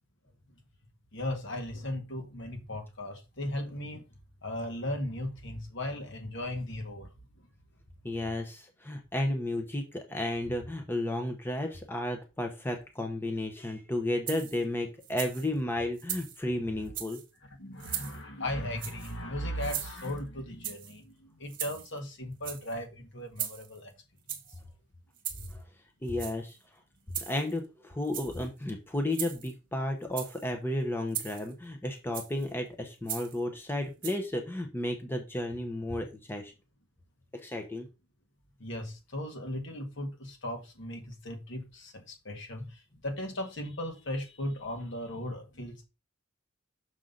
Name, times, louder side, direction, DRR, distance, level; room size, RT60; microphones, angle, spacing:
voice 1, 1.1-4.0 4.4-7.1 17.6-23.9 38.6-45.8, left 1 dB, 60° left, 1.7 m, -37 dB
voice 2, 8.0-17.2 25.4-25.6 26.0-26.6 27.2-36.5 37.3-37.9, left 1 dB, 10° left, 0.8 m, -33 dB
sound 1, 14.3-14.6 15.0-15.5 16.0-16.4 16.9-17.3 17.8-18.2 18.8-19.2 19.6-20.2 20.6-21.0 21.5-22.0 22.3-22.8 23.4-23.8 24.3-24.6 25.2-25.6 26.1-26.6 27.1-27.6 28.0-28.5 29.1-29.5 30.0-30.4 31.1-31.5 32.1-32.5 33.1-33.4 34.0-34.2, right 10 dB, 45° right, 1.3 m, -38 dB
6.3 x 5.6 x 3.9 m
head